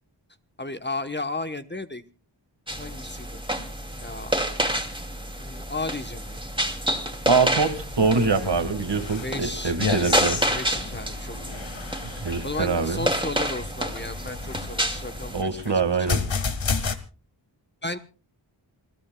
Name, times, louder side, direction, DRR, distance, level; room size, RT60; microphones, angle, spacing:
voice 1, 0.6-2.0 2.7-3.4 4.0-4.4 5.4-6.4 9.2-11.6 12.4-15.7 16.0-16.1 17.8-18.0, left 2 dB, 25° left, 9 dB, 1.0 m, -34 dB
sound 1, 2.7-15.4, right 1 dB, 10° right, 2.6 m, -29 dB
voice 2, 7.3-10.4 12.2-13.0 15.3-16.2, right 4 dB, 65° right, 9 dB, 2.0 m, -24 dB
sound 2, 7.6-17.0, left 5 dB, 75° left, 1.6 m, -32 dB
28.0 x 16.0 x 2.3 m, 0.36 s
wide cardioid pair, 60°, 45 cm